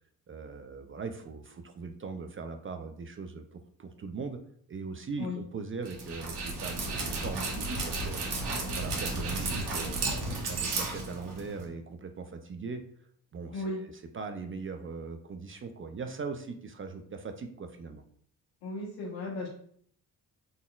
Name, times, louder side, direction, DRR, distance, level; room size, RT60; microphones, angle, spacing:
voice 1, 0.3-4.4 4.7-8.2 8.8-10.1 10.5-12.8 13.3-18.0, right 4 dB, 30° right, 6 dB, 0.4 m, -40 dB
Dog, 5.9-11.6, right 3 dB, 60° right, 1.5 m, -33 dB
voice 2, 18.6-19.5, left 2 dB, 85° left, -6 dB, 1.3 m, -35 dB
3.9 x 3.7 x 2.4 m, 0.62 s
supercardioid pair, 65°, 44 cm